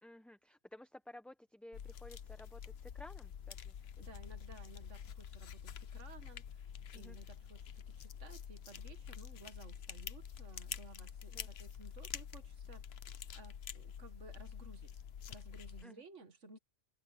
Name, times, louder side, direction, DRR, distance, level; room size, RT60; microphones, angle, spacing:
voice 1, 0.0-4.1 6.9-7.2 11.3-11.5 15.8-16.0, left 1 dB, ahead, 0.9 m, -55 dB
sound 1, 1.7-15.8, left 8 dB, 60° left, 1.0 m, -48 dB
voice 2, 4.0-6.6 6.9-12.8 13.4-15.0 15.3-16.6, right 3 dB, 80° right, 2.1 m, -57 dB
omnidirectional pair, 1.2 m